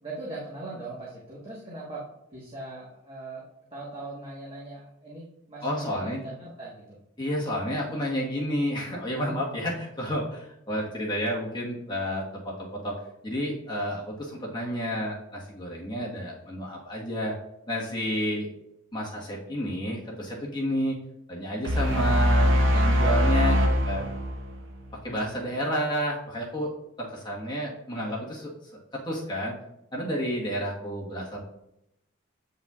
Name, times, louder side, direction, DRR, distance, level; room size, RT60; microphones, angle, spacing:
voice 1, 0.0-3.4 3.7-7.0, right 2 dB, 25° right, -7 dB, 1.3 m, -40 dB
voice 2, 5.6-6.2 7.2-13.0 13.2-17.3 17.7-18.5 18.9-21.0 21.3-24.1 25.0-26.7 27.0-28.5 28.9-29.5 29.9-31.4, equal, 20° left, -3 dB, 1.3 m, -30 dB
sound 1, 21.6-25.0, equal, 65° right, 0.7 m, -22 dB
8.5 x 5.5 x 2.4 m, 0.84 s
head